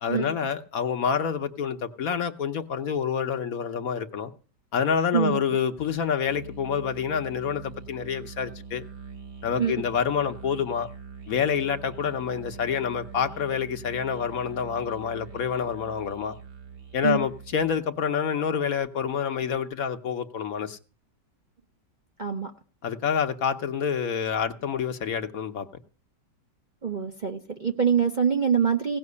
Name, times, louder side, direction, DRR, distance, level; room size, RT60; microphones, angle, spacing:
voice 1, 0.0-4.3 4.7-8.8 9.4-10.9 11.3-16.3 16.9-20.8 22.8-25.7, left 7 dB, 60° left, 1.2 m, -27 dB
voice 2, 5.1-5.5 9.6-9.7 17.0-17.2 22.2-22.5 26.8-29.0, right 7 dB, 35° right, 0.8 m, -24 dB
Musical instrument, 6.2-17.9, right 5 dB, 75° right, 2.5 m, -44 dB
17.0 x 5.9 x 9.5 m
omnidirectional pair, 1.8 m